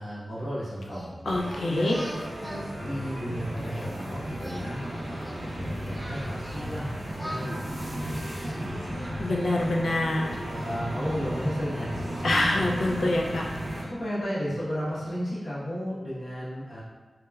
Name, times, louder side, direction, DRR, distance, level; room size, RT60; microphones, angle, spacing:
voice 1, 0.0-1.1 1.7-2.1 2.4-8.8 9.1-9.5 10.5-12.7 13.8-16.8, equal, 65° left, -10 dB, 1.0 m, -34 dB
Singing, 0.8-3.9 4.3-6.8 7.2-9.8, equal, 5° left, 0.4 m, -43 dB
sound 1, 1.2-13.8, equal, 75° right, 0.6 m, -34 dB
voice 2, 1.3-1.9 9.2-10.4 12.2-13.4, left 2 dB, 90° left, -2 dB, 0.3 m, -25 dB
3.1 x 2.1 x 2.3 m, 1.3 s
wide cardioid pair, 80°, 0 cm